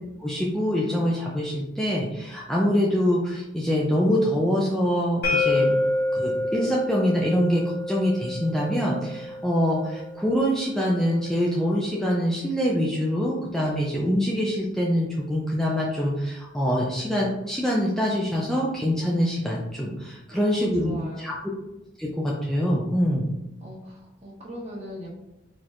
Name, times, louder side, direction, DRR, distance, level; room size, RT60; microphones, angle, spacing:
voice 1, 0.2-5.7 6.1-20.9 21.2-21.3 22.0-23.3, equal, 5° left, -4 dB, 0.4 m, -24 dB
sound 1, 5.2-11.0, left 2 dB, 50° left, 1.5 m, -28 dB
voice 2, 20.3-21.3 23.6-25.1, equal, 35° right, -3 dB, 1.2 m, -39 dB
4.3 x 4.1 x 2.5 m, 0.95 s
head